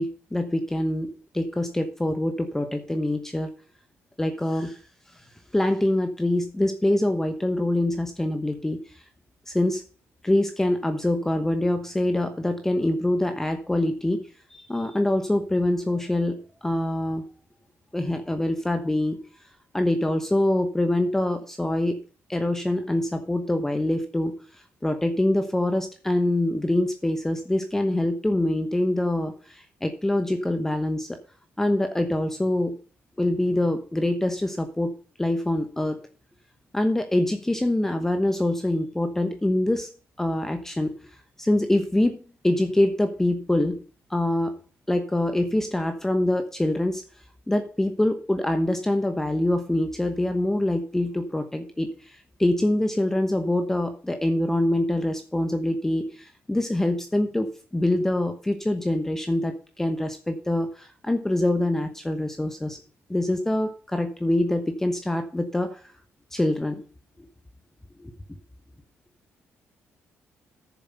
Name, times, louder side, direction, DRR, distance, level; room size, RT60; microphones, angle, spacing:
voice 1, 0.0-3.5 4.2-4.8 5.1-5.2 5.5-9.0 9.5-9.8 10.2-17.3 17.9-19.2 19.7-22.0 22.3-31.2 31.6-32.8 33.2-36.0 36.7-39.9 40.2-40.9 41.4-42.2 42.4-43.8 44.1-44.6 44.9-47.0 47.5-62.8 63.1-65.9 66.3-66.8 68.0-68.1, left 1 dB, 10° left, 7 dB, 1.0 m, -25 dB
10.0 x 7.1 x 5.6 m, 0.37 s
cardioid pair, 125°, 5 cm